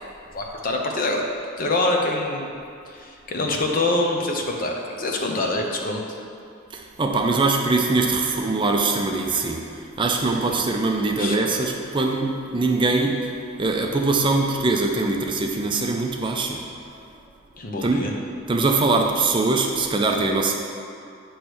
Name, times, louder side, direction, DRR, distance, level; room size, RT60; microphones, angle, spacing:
voice 1, 0.3-1.3 1.6-2.5 2.9-6.0 11.2-11.7 17.6-18.1, left 2 dB, 45° left, 1 dB, 0.8 m, -25 dB
voice 2, 6.7-13.3 13.6-16.6 17.8-18.0 18.5-20.5, right 3 dB, 25° right, 2 dB, 0.4 m, -22 dB
8.4 x 3.1 x 6.2 m, 2.4 s
head